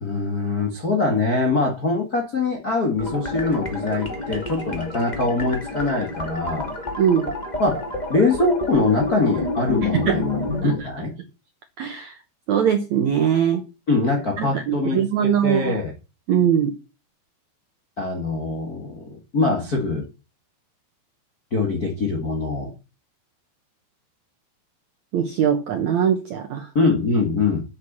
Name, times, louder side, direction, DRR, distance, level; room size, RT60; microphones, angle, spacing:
voice 1, 0.0-6.7 7.6-7.8 8.1-10.4 10.8-11.1 13.9-15.9 18.0-20.1 21.5-22.7 26.7-27.6, left 3 dB, 45° left, 1.1 m, -23 dB
sound 1, 3.0-10.8, left 2 dB, 30° left, 0.7 m, -29 dB
voice 2, 7.0-7.3 10.1-10.2 10.6-10.9 11.8-12.1 12.5-13.6 14.4-15.8 16.3-16.7 25.1-26.7, right 8 dB, 70° right, 1.7 m, -21 dB
8.4 x 8.2 x 7.4 m
omnidirectional pair, 4.8 m